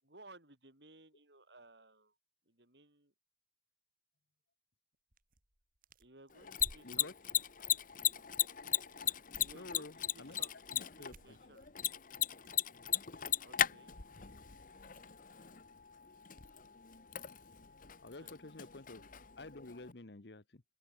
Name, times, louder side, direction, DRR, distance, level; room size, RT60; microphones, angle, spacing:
voice 1, 0.0-2.2 2.5-3.1 6.0-7.4 8.0-8.3 9.0-11.7 13.4-14.0 18.1-18.3, right 2 dB, 75° right, 7.1 m, -60 dB
sound 1, 5.1-6.9 8.6-9.0 9.3-9.6 9.9-10.5 11.0-12.6, right 1 dB, 55° right, 4.6 m, -57 dB
Mechanisms, 6.3-19.9, left 11 dB, 50° left, 1.2 m, -38 dB
voice 2, 9.5-9.9 10.2-10.4 10.7-11.4 18.0-19.0 19.4-20.6, left 2 dB, 70° left, 1.3 m, -50 dB
open air
head